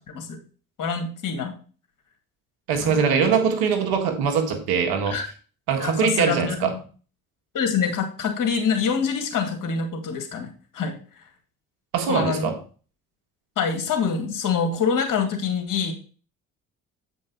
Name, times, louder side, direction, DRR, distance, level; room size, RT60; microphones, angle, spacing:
voice 1, 0.8-1.5 2.8-3.0 5.1-5.3 5.8-6.8 7.5-10.9 12.1-12.5 13.6-15.9, left 6 dB, 60° left, 2.3 m, -25 dB
voice 2, 2.7-5.2 5.7-6.8 11.9-12.6, right 6 dB, 80° right, 1.8 m, -22 dB
8.1 x 5.4 x 4.5 m
supercardioid pair, 65°, 37 cm